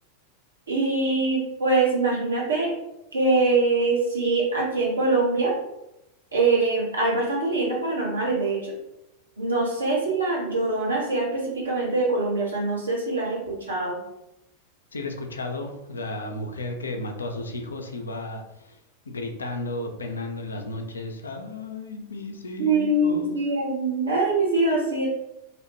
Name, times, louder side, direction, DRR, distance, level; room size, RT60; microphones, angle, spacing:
voice 1, 0.7-2.7 3.1-5.5 6.3-8.7 9.4-14.0 22.6-25.1, right 3 dB, 75° right, -4 dB, 0.9 m, -23 dB
voice 2, 14.9-18.8 19.1-23.3, left 2 dB, 75° left, 4 dB, 0.4 m, -33 dB
2.8 x 2.1 x 2.8 m, 0.87 s
figure-of-eight pair, 90°, 0 cm